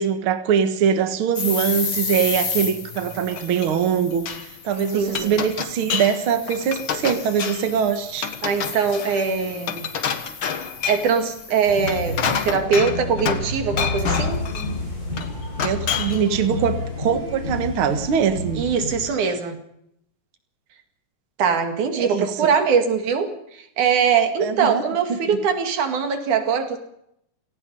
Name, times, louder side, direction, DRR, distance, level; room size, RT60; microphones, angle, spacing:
voice 1, 0.0-4.2 4.6-8.3 15.6-18.7 22.0-22.5 24.4-24.8, right 7 dB, 50° right, 8 dB, 2.1 m, -22 dB
sound 1, 1.4-12.5, left 5 dB, 70° left, 4.9 m, -33 dB
Glass, 3.0-4.5 4.9-6.2 6.5-7.8 8.2-11.1 11.7-13.5 13.8-14.7 15.2-16.3, left 7 dB, 50° left, 1.8 m, -28 dB
voice 2, 4.9-5.4 8.4-9.9 10.9-14.4 18.6-19.6 21.4-26.8, right 6 dB, 90° right, 5 dB, 3.7 m, -22 dB
sound 2, 11.6-19.0, left 1 dB, 25° left, 8.6 m, -29 dB
27.5 x 17.5 x 5.5 m, 0.76 s
omnidirectional pair, 3.4 m